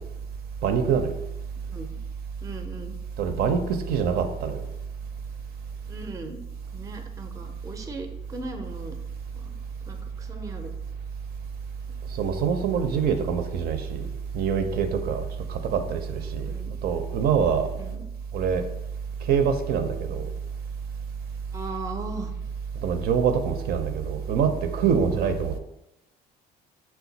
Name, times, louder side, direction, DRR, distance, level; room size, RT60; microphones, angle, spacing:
voice 1, 0.6-1.1 3.2-4.6 12.2-14.1 14.3-16.5 16.8-17.7 18.3-18.6 19.3-20.3 22.8-25.6, right 7 dB, 70° right, 7 dB, 0.5 m, -25 dB
voice 2, 2.4-3.0 5.9-6.4 6.7-9.0 9.3-9.6 9.9-10.7 16.5-16.7 17.7-18.0 21.5-22.3 25.1-25.5, right 2 dB, 20° right, 6 dB, 0.5 m, -38 dB
5.9 x 2.3 x 3.9 m, 0.89 s
cardioid pair, 110°, 17 cm